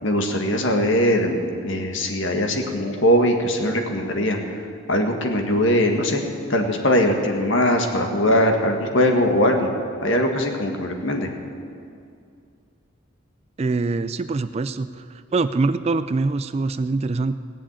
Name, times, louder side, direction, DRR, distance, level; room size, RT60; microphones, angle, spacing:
voice 1, 0.0-4.6 4.9-6.2 6.5-9.7 10.0-11.3, left 1 dB, 65° left, 3 dB, 1.7 m, -21 dB
voice 2, 13.6-17.3, right 3 dB, 30° right, 13 dB, 0.3 m, -24 dB
17.0 x 7.3 x 8.9 m, 2.4 s
head